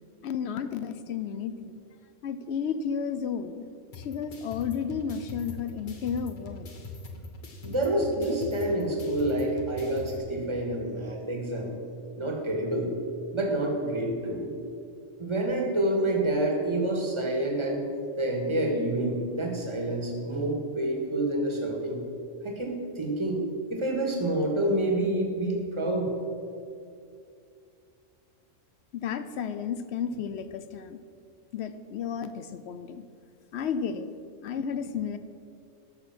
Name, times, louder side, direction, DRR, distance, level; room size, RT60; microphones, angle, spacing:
voice 1, 0.2-1.8 2.2-3.7 3.9-6.7 28.9-31.0 31.5-33.1 33.5-34.1 34.4-35.2, left 7 dB, 65° left, 12 dB, 0.8 m, -32 dB
sound 1, 3.9-10.2, left 2 dB, 40° left, 1.3 m, -42 dB
voice 2, 7.6-11.8 12.2-12.9 13.3-14.5 15.2-17.9 18.2-22.0 22.4-23.4 23.7-26.1, right 1 dB, 25° right, 0 dB, 1.7 m, -28 dB
12.5 x 6.7 x 6.0 m, 2.4 s
omnidirectional pair, 1.3 m